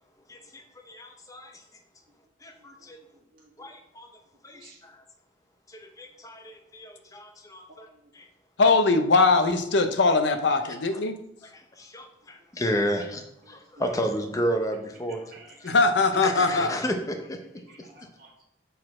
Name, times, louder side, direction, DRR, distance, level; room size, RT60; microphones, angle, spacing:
voice 1, 0.3-1.5 2.4-3.0 3.6-4.1 4.4-4.9 6.0-7.9 8.2-8.3 11.8-15.2 16.2-17.4, equal, 15° left, 5 dB, 0.7 m, -32 dB
voice 2, 3.3-3.7 4.5-4.8 7.9-8.0 12.9-13.0 13.5-13.8 15.1-15.7 17.7-18.3, right 2 dB, 45° right, -4 dB, 1.8 m, -53 dB
voice 3, 8.6-11.2 15.6-16.7, left 3 dB, 65° left, 8 dB, 0.6 m, -21 dB
6.8 x 4.2 x 4.2 m, 0.79 s
head